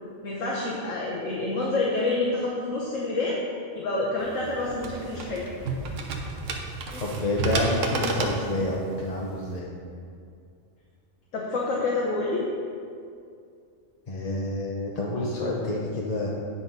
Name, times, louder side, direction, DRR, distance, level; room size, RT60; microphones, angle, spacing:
voice 1, 0.2-3.4 3.7-5.5 11.3-12.5, left 2 dB, 90° left, -4 dB, 1.3 m, -28 dB
sound 1, 4.2-9.6, right 3 dB, 80° right, 1.2 m, -32 dB
voice 2, 7.0-9.7 14.1-16.3, left 1 dB, 35° left, -4 dB, 0.9 m, -28 dB
9.8 x 4.1 x 5.3 m, 2.4 s
omnidirectional pair, 1.3 m